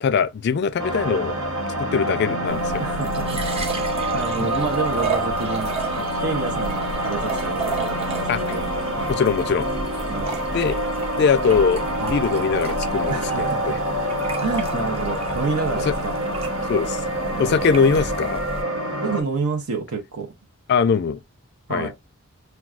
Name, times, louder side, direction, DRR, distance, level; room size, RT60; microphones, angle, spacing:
voice 1, 0.0-1.3 1.8-2.8 3.8-3.9 4.4-4.6 8.3-8.4 9.1-9.7 10.5-10.8 11.2-13.8 15.9-16.0 16.7-17.0 17.4-18.4 20.7-21.2 21.7-21.9, left 5 dB, 50° left, 0.3 m, -22 dB
sound 1, 0.8-19.2, right 1 dB, 90° right, 1.0 m, -26 dB
sound 2, 2.5-18.6, right 3 dB, 25° right, 0.6 m, -34 dB
voice 2, 2.8-3.4 4.1-5.7 6.2-9.2 10.1-10.5 13.1-13.8 14.3-16.1 17.4-17.8 19.0-20.3 21.7-21.9, right 4 dB, 75° right, 0.7 m, -29 dB
5.8 x 2.3 x 2.3 m
head